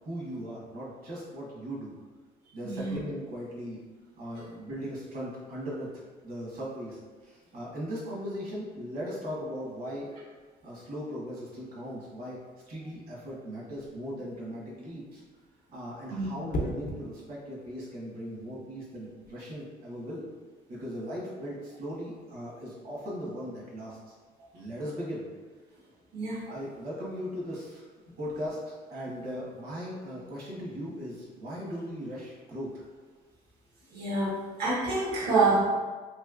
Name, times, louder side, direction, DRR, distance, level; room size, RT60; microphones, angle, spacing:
voice 1, 0.0-1.9 2.5-3.8 4.2-5.9 6.2-10.1 10.6-12.4 12.7-15.2 15.7-20.3 20.7-24.0 24.5-25.3 26.4-27.8 28.2-32.8, equal, 60° right, -5 dB, 1.3 m, -38 dB
sound 1, 16.5-17.1 19.0-19.3, equal, 55° left, 0.6 m, -34 dB
voice 2, 26.1-26.4 33.9-35.6, right 3 dB, 80° right, -5 dB, 1.1 m, -27 dB
3.2 x 2.9 x 2.4 m, 1.4 s
cardioid pair, 110°, 17 cm